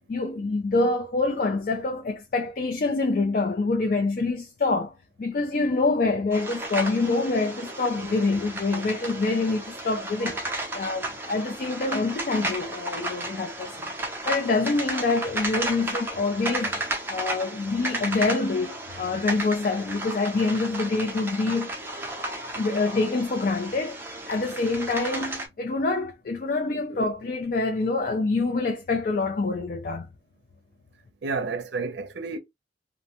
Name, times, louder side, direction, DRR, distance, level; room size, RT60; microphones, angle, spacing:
voice 1, 0.1-10.4 10.7-13.7 14.3-16.8 17.1-21.7 22.5-24.0 24.3-30.1, left 3 dB, 50° left, 0.4 m, -26 dB
sound 1, 6.3-25.5, right 1 dB, 15° right, 0.5 m, -33 dB
voice 2, 31.2-32.4, right 4 dB, 80° right, 0.5 m, -31 dB
2.6 x 2.1 x 2.8 m
head